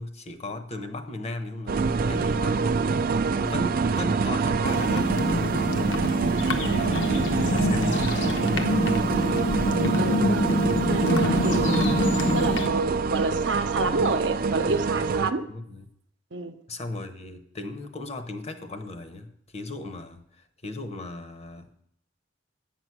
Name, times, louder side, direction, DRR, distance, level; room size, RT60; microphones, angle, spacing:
voice 1, 0.0-5.1 6.8-9.0 11.3-11.6 15.5-15.9 16.7-19.3 19.5-20.2 20.6-21.8, left 2 dB, 35° left, 8 dB, 0.9 m, -37 dB
sound 1, 1.7-15.3, right 4 dB, 50° right, 0.4 m, -26 dB
sound 2, 4.6-12.7, left 1 dB, 80° left, 0.9 m, -26 dB
voice 2, 10.0-10.6 10.9-11.9 12.3-15.5 16.3-16.6, right 3 dB, 70° right, 8 dB, 0.8 m, -29 dB
8.8 x 6.0 x 6.1 m, 0.70 s
head